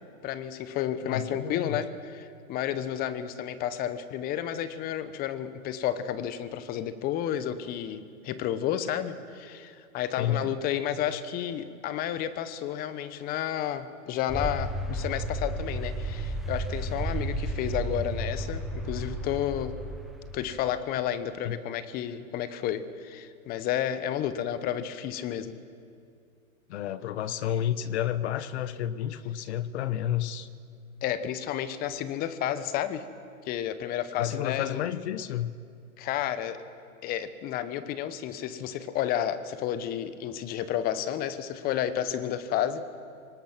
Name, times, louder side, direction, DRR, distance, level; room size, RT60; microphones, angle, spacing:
voice 1, 0.2-19.8 20.3-25.6 31.0-33.0 33.5-34.8 36.0-36.6 37.0-42.9, left 10 dB, 20° left, 13 dB, 0.9 m, -31 dB
voice 2, 1.0-1.8 10.2-10.5 21.4-21.6 26.7-30.5 34.2-35.5, left 11 dB, 50° left, 15 dB, 1.1 m, -31 dB
sound 1, 14.3-20.8, right 1 dB, ahead, 1.1 m, -33 dB
24.0 x 19.0 x 6.1 m, 2.3 s
hypercardioid pair, 135°, 42 cm